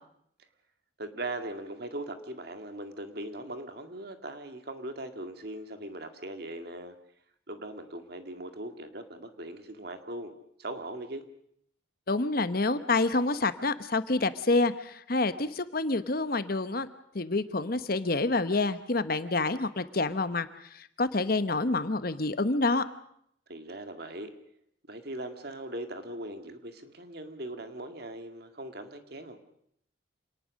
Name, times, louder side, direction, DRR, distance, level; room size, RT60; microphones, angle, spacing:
voice 1, 1.0-7.0 7.5-10.3 10.6-11.3 23.5-24.3 24.9-29.4, right 1 dB, 50° right, 7 dB, 2.0 m, -40 dB
voice 2, 12.1-16.9 17.1-20.5 20.7-22.8, left 3 dB, 50° left, 12 dB, 1.0 m, -27 dB
27.5 x 19.0 x 6.4 m, 0.71 s
head